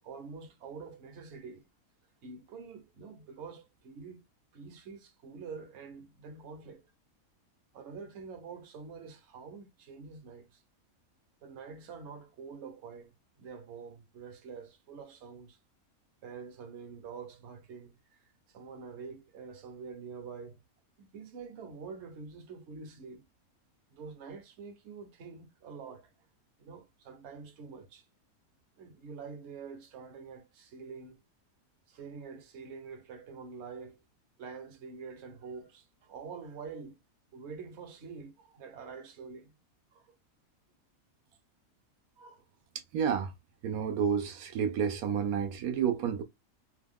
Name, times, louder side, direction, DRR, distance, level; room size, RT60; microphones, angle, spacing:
voice 1, 0.0-1.6 2.2-4.2 4.5-6.8 7.7-10.6 11.4-15.6 16.2-18.0 18.5-20.6 21.0-23.2 23.9-26.1 26.6-28.1 28.8-31.2 31.9-34.0 34.4-37.0 37.3-39.5 39.9-40.1 42.2-42.4, right 5 dB, 55° right, 1.0 m, -46 dB
voice 2, 42.9-43.3 43.6-46.2, right 7 dB, 85° right, 1.1 m, -30 dB
2.8 x 2.2 x 3.4 m
omnidirectional pair, 1.5 m